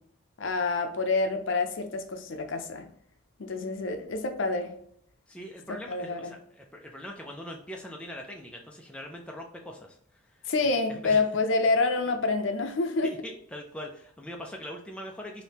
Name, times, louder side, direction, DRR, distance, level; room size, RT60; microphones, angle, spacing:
voice 1, 0.4-2.9 3.4-4.7 5.9-6.3 10.5-13.1, left 3 dB, 65° left, 6 dB, 0.5 m, -27 dB
voice 2, 5.3-10.0 10.2-10.5 10.9-11.2 13.0-15.4, equal, 5° left, 0 dB, 0.3 m, -42 dB
3.5 x 2.7 x 2.8 m, 0.66 s
head